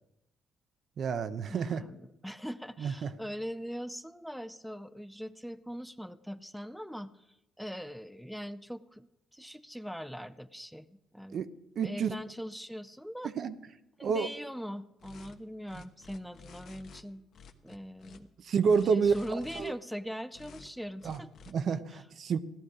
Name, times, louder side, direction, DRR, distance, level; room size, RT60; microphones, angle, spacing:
voice 1, 1.0-1.8 2.8-3.1 11.3-11.5 11.8-12.1 13.2-13.6 14.0-14.3 18.4-19.7 21.0-21.2 21.5-22.4, right 6 dB, 60° right, 11 dB, 0.8 m, -29 dB
voice 2, 1.5-11.4 11.8-13.3 14.0-17.2 17.6-18.3 18.9-21.3 21.9-22.0, equal, ahead, 12 dB, 0.5 m, -41 dB
sound 1, 15.0-15.3 15.6-17.0 17.3-18.2 18.6-19.7 20.3-20.7 21.0-21.5, left 5 dB, 70° left, 1.2 m, -52 dB
16.5 x 11.5 x 4.9 m, 0.89 s
cardioid pair, 90°, 0 cm